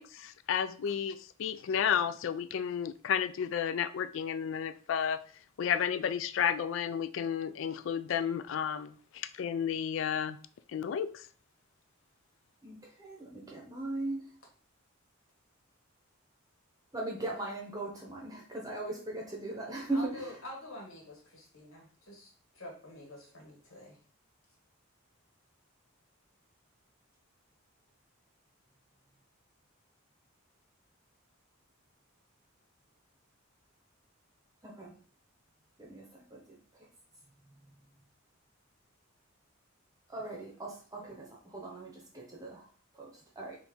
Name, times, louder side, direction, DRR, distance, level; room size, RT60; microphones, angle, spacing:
voice 1, 0.0-5.2 5.6-10.4 10.7-11.2, left 8 dB, 65° left, 0.3 m, -32 dB
voice 2, 12.6-14.2 16.9-20.2 34.6-34.9 35.8-36.0 36.3-36.4 40.1-41.3 41.5-42.6 43.0-43.1 43.4-43.6, right 2 dB, 20° right, 0.8 m, -38 dB
voice 3, 19.9-24.0, left 1 dB, 90° left, 1.9 m, -47 dB
3.7 x 2.8 x 4.3 m
head